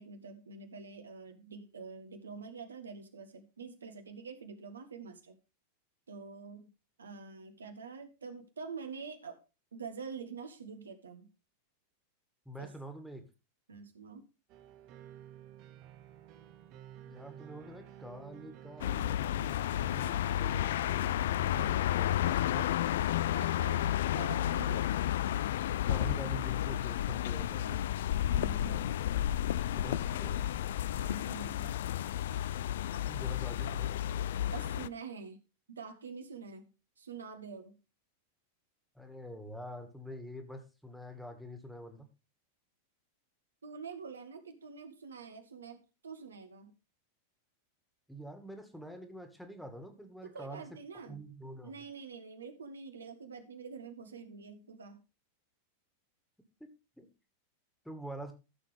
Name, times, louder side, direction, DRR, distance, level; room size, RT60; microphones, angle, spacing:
voice 1, 0.0-5.3 6.1-6.7 7.0-9.4 9.7-11.3 12.6-12.7 13.7-14.2 23.3-24.8 28.2-28.9 31.0-31.7 34.5-35.4 35.7-36.7 37.0-37.8 43.6-46.7 50.2-51.2 51.6-55.0, right 5 dB, 70° right, 7 dB, 1.6 m, -46 dB
voice 2, 12.5-13.3 17.0-22.8 25.9-27.8 29.8-30.5 33.0-33.9 38.9-42.1 48.1-50.7 51.1-51.8 56.6-56.7 57.0-57.1 57.8-58.3, equal, ahead, 6 dB, 2.0 m, -46 dB
sound 1, 14.5-20.3, right 11 dB, 40° right, 1.2 m, -53 dB
sound 2, 18.8-34.9, left 12 dB, 60° left, 0.4 m, -32 dB
14.5 x 7.0 x 3.5 m, 0.29 s
figure-of-eight pair, 90°, 0 cm